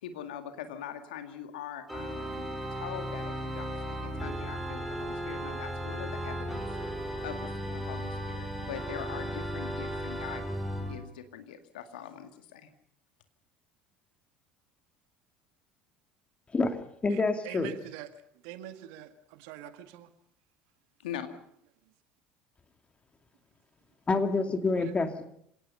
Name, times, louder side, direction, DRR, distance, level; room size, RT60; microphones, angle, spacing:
voice 1, 0.0-6.6 7.2-10.5 10.8-12.7 21.0-21.3, left 9 dB, 70° left, 2.1 m, -42 dB
Organ, 1.9-11.0, equal, 5° right, 5.6 m, -35 dB
voice 2, 16.5-17.7 24.1-25.3, left 3 dB, 25° left, 2.6 m, -27 dB
voice 3, 17.1-18.1 18.4-20.1 24.7-24.9, right 12 dB, 60° right, 1.8 m, -44 dB
27.0 x 17.5 x 5.6 m
figure-of-eight pair, 65°, 5 cm